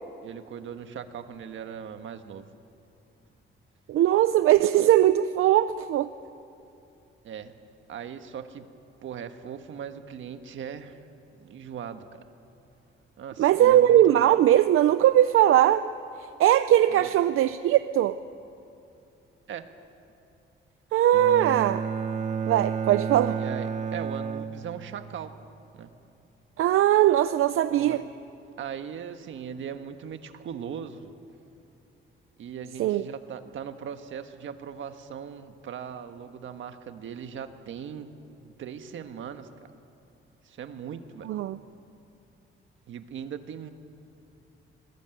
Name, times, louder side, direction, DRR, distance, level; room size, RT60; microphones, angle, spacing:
voice 1, 0.2-2.4 7.2-7.5 7.9-8.6 9.0-11.0 11.4-12.2 13.2-14.2 16.9-17.1 19.5-19.7 23.4-25.3 25.7-25.9 27.7-28.0 28.6-31.1 32.4-38.1 38.4-39.7 40.4-41.3 42.9-43.7, right 8 dB, 65° right, 8 dB, 1.5 m, -39 dB
voice 2, 3.9-6.1 13.4-15.9 16.4-18.2 20.9-21.8 22.5-23.4 26.6-28.0 32.8-33.0 41.3-41.6, right 12 dB, 85° right, 12 dB, 0.6 m, -20 dB
Bowed string instrument, 21.1-25.2, right 6 dB, 35° right, 0.8 m, -31 dB
25.5 x 21.0 x 9.2 m, 2.7 s
wide cardioid pair, 175°, 21 cm